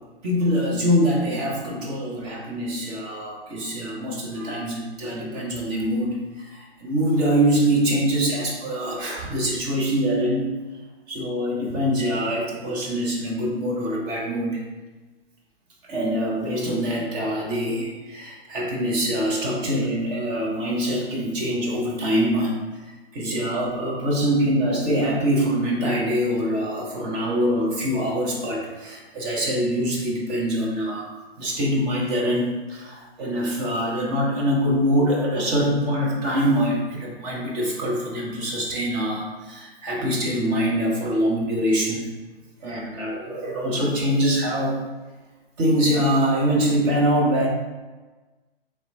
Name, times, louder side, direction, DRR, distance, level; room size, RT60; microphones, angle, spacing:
voice 1, 0.0-10.6 11.1-14.6 15.8-22.8 23.1-31.1 31.4-42.0 42.6-44.8 45.6-47.5, equal, 15° right, -3 dB, 0.4 m, -24 dB
4.1 x 3.1 x 2.5 m, 1.2 s
hypercardioid pair, 130°, 31 cm